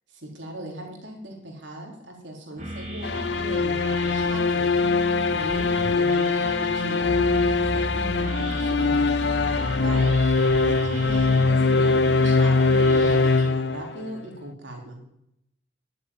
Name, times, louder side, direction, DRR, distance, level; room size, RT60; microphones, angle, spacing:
voice 1, 0.1-4.7 5.0-15.0, right 1 dB, 80° right, 1 dB, 3.6 m, -38 dB
sound 1, 2.6-13.5, right 1 dB, 40° right, 2.2 m, -33 dB
sound 2, 3.0-14.2, left 4 dB, 60° left, 0.4 m, -22 dB
10.5 x 8.0 x 9.3 m, 0.80 s
head